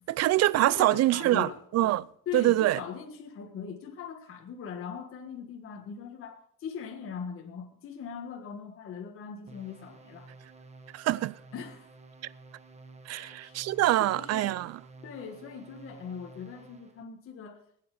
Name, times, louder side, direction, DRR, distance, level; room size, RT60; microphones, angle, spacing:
voice 1, 0.1-2.1 2.3-2.8 10.9-11.3 13.1-14.8, right 15 dB, 55° right, 0.5 m, -25 dB
voice 2, 0.6-1.6 2.2-10.3 11.5-11.9 13.1-13.6 14.0-14.5 15.0-17.6, left 7 dB, 45° left, 1.6 m, -40 dB
sound 1, 9.5-17.0, right 3 dB, 20° right, 1.1 m, -52 dB
19.5 x 9.0 x 4.9 m
cardioid pair, 180°, 32 cm